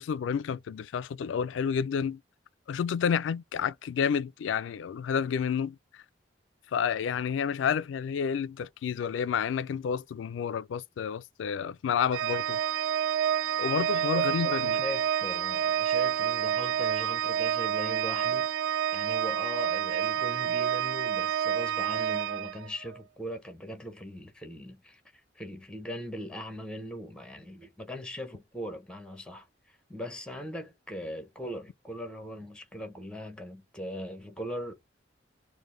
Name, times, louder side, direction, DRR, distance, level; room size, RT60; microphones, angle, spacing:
voice 1, 0.0-2.2 2.7-5.8 6.7-12.6 13.6-14.8, left 7 dB, 80° left, 0.3 m, -30 dB
Organ, 12.1-23.0, right 9 dB, 85° right, 0.3 m, -28 dB
voice 2, 14.2-25.0 25.3-34.7, equal, 5° left, 0.9 m, -40 dB
5.3 x 2.1 x 3.2 m
head